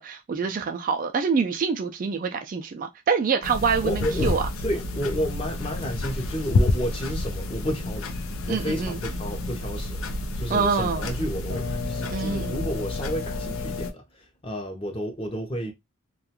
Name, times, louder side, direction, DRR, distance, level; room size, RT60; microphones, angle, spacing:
voice 1, 0.0-4.4 8.5-9.0 10.5-11.0 12.1-12.7, right 5 dB, 40° right, 0.3 m, -26 dB
sound 1, 3.4-13.9, left 2 dB, 80° left, 0.5 m, -29 dB
voice 2, 3.8-4.3 4.6-8.1 8.5-10.0 10.4-15.7, equal, 25° left, 0.7 m, -31 dB
2.4 x 2.3 x 2.8 m
head